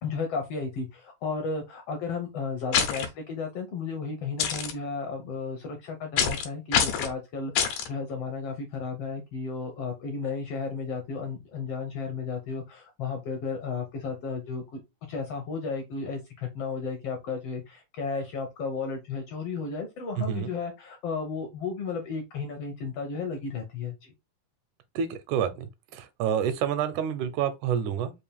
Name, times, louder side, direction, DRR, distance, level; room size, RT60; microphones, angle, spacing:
voice 1, 0.0-14.8 15.1-24.1, left 4 dB, 70° left, 1.5 m, -34 dB
sound 1, 2.7-3.1 4.4-4.7 6.2-6.5 6.7-7.1 7.6-7.9, left 7 dB, 90° left, 2.4 m, -25 dB
voice 2, 25.0-28.1, right 8 dB, 85° right, 2.1 m, -28 dB
5.4 x 2.5 x 3.3 m
omnidirectional pair, 3.6 m